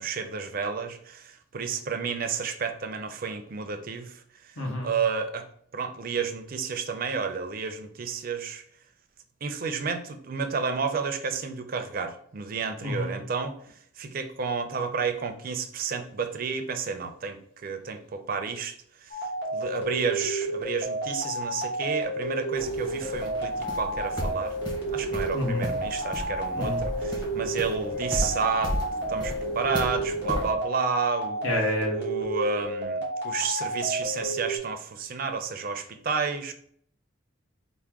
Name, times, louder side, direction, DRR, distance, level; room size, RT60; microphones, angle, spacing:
voice 1, 0.0-4.2 4.8-5.5 5.7-8.6 9.4-13.6 14.0-19.1 19.5-24.5 24.9-28.8 29.1-31.4 31.9-36.5, right 5 dB, 45° right, 7 dB, 0.4 m, -31 dB
voice 2, 4.6-4.9 12.8-13.2 25.3-25.7 26.6-26.8 31.4-32.0, left 1 dB, 80° left, -1 dB, 1.2 m, -29 dB
sound 1, 19.1-34.6, right 1 dB, 55° left, 1.2 m, -31 dB
sound 2, 22.6-30.5, equal, 20° left, 0.9 m, -35 dB
4.5 x 2.1 x 3.5 m, 0.63 s
head